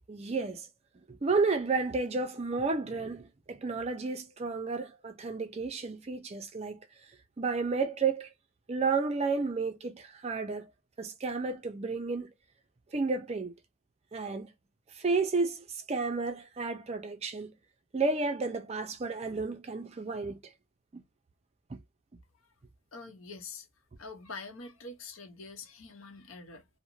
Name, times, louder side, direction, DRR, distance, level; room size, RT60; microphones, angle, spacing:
voice 1, 0.1-0.7 1.1-6.8 7.4-8.3 8.7-10.7 11.0-12.3 12.9-13.5 14.1-14.5 15.0-17.5 17.9-20.4 20.9-21.0 21.7-21.8, right 4 dB, 30° right, 0.4 m, -32 dB
voice 2, 22.9-23.7 24.0-26.7, left 3 dB, 75° left, 0.7 m, -45 dB
2.5 x 2.0 x 2.9 m
head